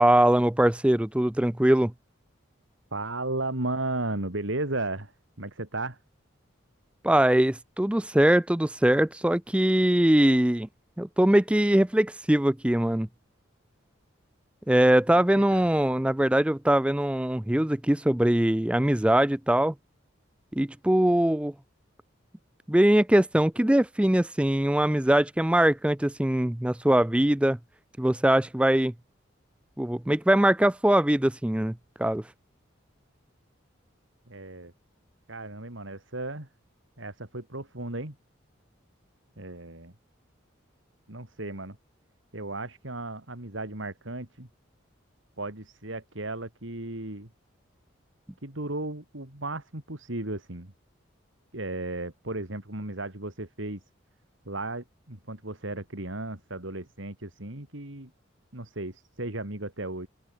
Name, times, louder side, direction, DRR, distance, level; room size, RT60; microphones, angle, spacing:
voice 1, 0.0-1.9 7.0-10.7 11.0-13.1 14.7-19.7 20.5-21.5 22.7-27.6 28.0-28.9 29.8-32.2, right 1 dB, 5° right, 0.4 m, -22 dB
voice 2, 2.9-5.1 5.4-6.0 15.1-15.7 34.3-34.7 35.3-36.5 37.0-38.2 39.4-39.9 41.1-41.8 42.3-44.5 45.4-47.3 48.4-50.7 51.5-53.8 54.4-58.1 58.5-60.1, right 2 dB, 75° right, 3.3 m, -35 dB
open air
head